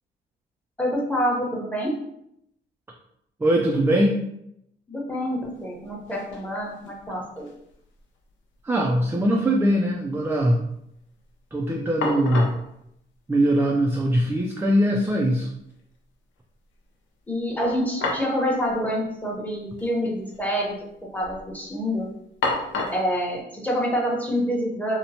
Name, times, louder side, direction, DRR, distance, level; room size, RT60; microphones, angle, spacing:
voice 1, 0.8-1.9 4.9-7.5 17.3-20.8 21.1-22.1 22.9-25.0, equal, 10° left, -2 dB, 0.8 m, -27 dB
voice 2, 3.4-4.2 8.6-10.6 11.5-12.6 13.3-15.5, right 1 dB, 10° right, 0 dB, 0.3 m, -21 dB
sound 1, 5.5-5.6 5.9-6.5 6.8-7.7 8.0-8.1 11.5-11.6 12.0-12.7 13.8-13.9 14.3-14.4 17.6-18.4 18.7-18.8 19.7-19.9 20.2-20.7 21.1-21.5 22.4-23.1, left 3 dB, 75° left, 0.6 m, -30 dB
2.9 x 2.1 x 2.7 m, 0.76 s
cardioid pair, 90°, 20 cm